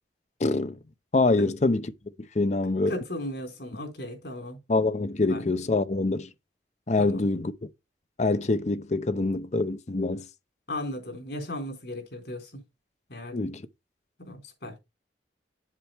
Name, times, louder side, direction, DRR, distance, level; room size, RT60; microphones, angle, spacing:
voice 1, 0.4-0.8 1.1-1.9 2.3-2.9 4.7-6.3 6.9-7.7 8.2-10.2 13.3-13.6, left 2 dB, 40° left, 0.6 m, -25 dB
voice 2, 2.9-4.6 5.3-5.4 7.0-7.2 10.7-12.5 13.1-13.4 14.2-14.7, left 1 dB, 65° left, 3.7 m, -36 dB
8.0 x 7.4 x 3.3 m
head